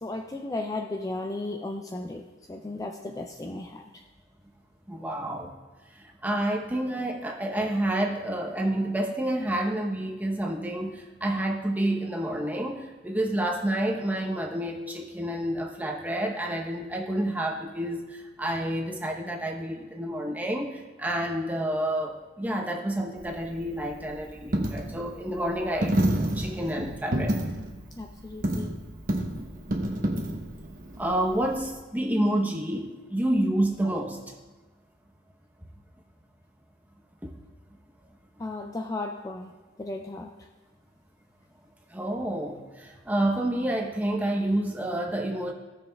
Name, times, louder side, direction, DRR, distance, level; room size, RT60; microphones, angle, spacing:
voice 1, 0.0-3.8 28.0-28.7 38.4-39.5 39.8-40.3, left 2 dB, 20° left, 3 dB, 0.3 m, -35 dB
voice 2, 4.9-5.5 5.9-27.4 31.0-34.4 37.2-37.3 41.9-45.5, right 1 dB, 10° right, 1 dB, 0.8 m, -29 dB
Coin (dropping), 23.2-31.7, right 1 dB, 45° right, 1.0 m, -30 dB
17.0 x 6.5 x 2.3 m, 1.2 s
head